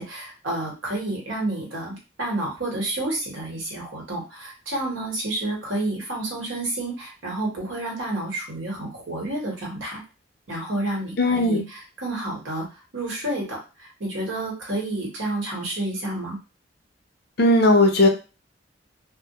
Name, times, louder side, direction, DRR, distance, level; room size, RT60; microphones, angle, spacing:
voice 1, 0.0-10.0 10.5-12.7 12.9-16.4, right 1 dB, 85° right, -1 dB, 1.0 m, -30 dB
voice 2, 11.2-11.6 17.4-18.1, left 1 dB, 55° left, 4 dB, 0.5 m, -17 dB
2.2 x 2.0 x 2.8 m, 0.31 s
head